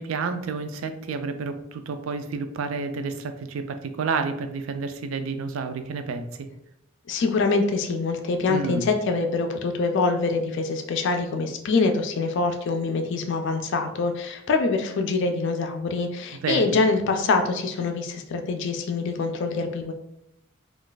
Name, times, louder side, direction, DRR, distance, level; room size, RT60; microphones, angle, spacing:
voice 1, 0.0-6.5 8.4-8.9 16.4-16.7, right 4 dB, 70° right, 8 dB, 0.4 m, -30 dB
voice 2, 7.1-19.9, left 3 dB, 60° left, 5 dB, 0.4 m, -25 dB
2.4 x 2.3 x 3.9 m, 0.80 s
head